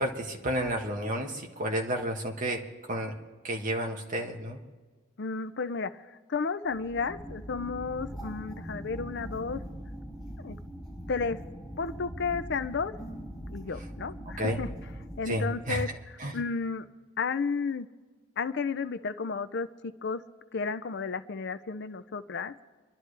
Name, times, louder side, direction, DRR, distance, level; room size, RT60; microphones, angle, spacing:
voice 1, 0.0-2.6 2.9-3.1 3.4-4.6 14.4-14.6 15.3-15.8 16.2-16.3, equal, 35° right, 1 dB, 1.4 m, -31 dB
voice 2, 5.2-9.6 10.4-10.6 11.1-11.4 11.8-12.9 13.5-14.7 15.2-15.9 16.3-16.9 17.2-17.9 18.4-20.2 20.5-22.6, left 4 dB, 50° left, 12 dB, 0.5 m, -32 dB
sound 1, 6.6-15.8, equal, ahead, 4.1 m, -42 dB
27.0 x 11.5 x 3.3 m, 1.4 s
head